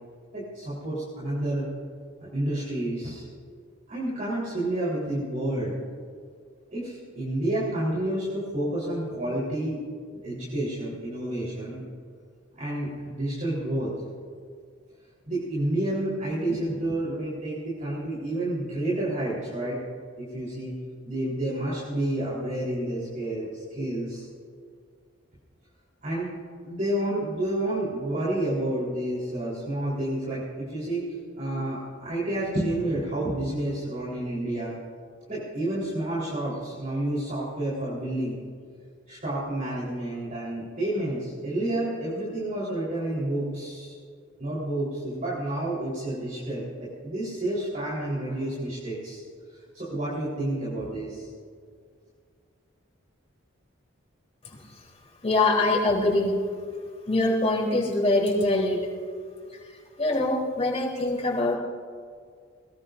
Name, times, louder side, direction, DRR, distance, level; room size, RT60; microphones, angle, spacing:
voice 1, 0.3-1.7 2.2-3.3 3.9-5.8 6.7-9.8 10.2-11.8 12.5-13.9 15.3-19.8 20.2-20.8 21.0-24.3 26.0-26.3 26.6-34.8 35.3-38.4 39.1-44.0 44.4-49.2 49.5-51.3, right 1 dB, 40° right, -8 dB, 4.1 m, -30 dB
voice 2, 54.4-54.9 55.2-56.3 57.1-58.9 59.5-61.6, left 2 dB, 35° left, -3 dB, 3.6 m, -24 dB
21.5 x 21.0 x 2.7 m, 2.1 s
head